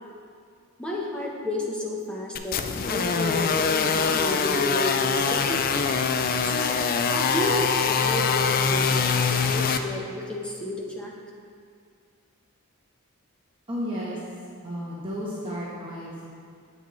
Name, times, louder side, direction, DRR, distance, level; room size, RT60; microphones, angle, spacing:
voice 1, 0.8-2.6 2.9-5.6 6.4-11.1, left 1 dB, 5° left, -3 dB, 0.8 m, -31 dB
sound 1, 2.3-9.8, left 5 dB, 40° left, 0.3 m, -24 dB
voice 2, 13.7-14.2 14.6-16.3, equal, 25° right, -7 dB, 1.0 m, -33 dB
7.9 x 7.3 x 3.1 m, 2.3 s
head